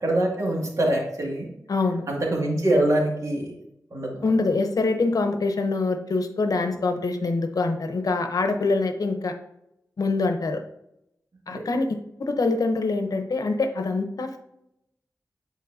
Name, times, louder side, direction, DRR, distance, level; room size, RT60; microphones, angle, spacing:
voice 1, 0.0-1.5 2.1-3.5 3.9-4.3 11.5-11.6, right 1 dB, 60° right, -2 dB, 2.1 m, -24 dB
voice 2, 1.7-2.0 4.2-9.4 10.0-10.6 11.5-14.4, left 3 dB, 75° left, 7 dB, 0.8 m, -25 dB
9.3 x 4.6 x 2.7 m, 0.82 s
wide cardioid pair, 90°, 6 cm